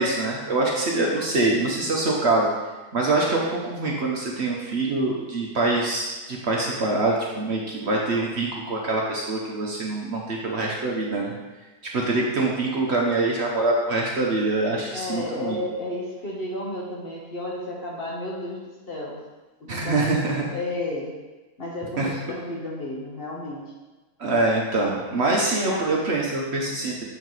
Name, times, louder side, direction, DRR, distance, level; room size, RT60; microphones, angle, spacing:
voice 1, 0.0-2.5 2.9-11.3 11.9-15.6 19.7-20.5 22.0-22.1 24.2-27.0, right 2 dB, 50° right, -2 dB, 1.0 m, -24 dB
voice 2, 14.9-19.2 19.6-20.2 20.5-21.1 21.6-23.6 25.6-25.9, left 1 dB, 45° left, -3 dB, 1.1 m, -32 dB
7.1 x 4.6 x 4.0 m, 1.2 s
omnidirectional pair, 1.6 m